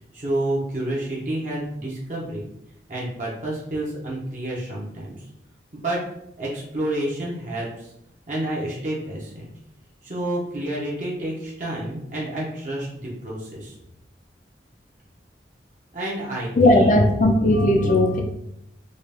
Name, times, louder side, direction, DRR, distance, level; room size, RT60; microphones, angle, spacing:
voice 1, 0.1-2.4 2.9-5.1 5.7-6.0 6.4-7.9 8.3-9.5 10.0-13.7 15.9-17.1, right 1 dB, 45° right, -5 dB, 0.9 m, -29 dB
voice 2, 16.6-18.2, left 1 dB, 45° left, 3 dB, 0.6 m, -17 dB
3.9 x 2.5 x 3.3 m, 0.79 s
head